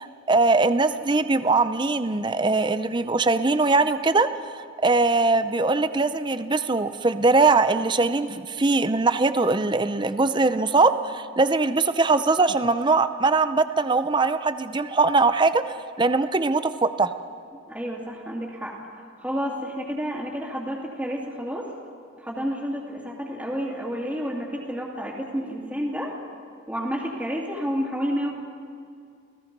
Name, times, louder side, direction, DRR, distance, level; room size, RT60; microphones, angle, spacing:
voice 1, 0.0-17.1, right 3 dB, 25° right, 11 dB, 0.6 m, -21 dB
voice 2, 17.7-18.8 19.2-21.7 22.2-26.2 26.7-28.3, equal, 5° right, -6 dB, 2.5 m, -30 dB
30.0 x 17.5 x 5.4 m, 2.2 s
head